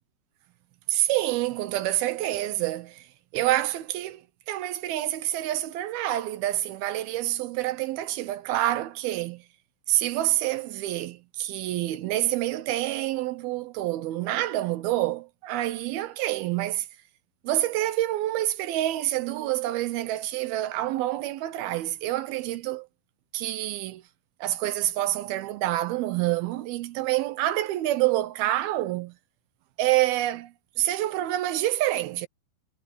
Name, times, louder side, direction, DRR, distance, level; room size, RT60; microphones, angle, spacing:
voice 1, 0.9-3.1 3.3-4.2 4.5-9.4 9.9-16.9 17.4-22.9 23.3-24.0 24.4-29.1 29.8-30.5 30.8-32.3, right 15 dB, 75° right, 2.4 m, -27 dB
omnidirectional pair, 5.0 m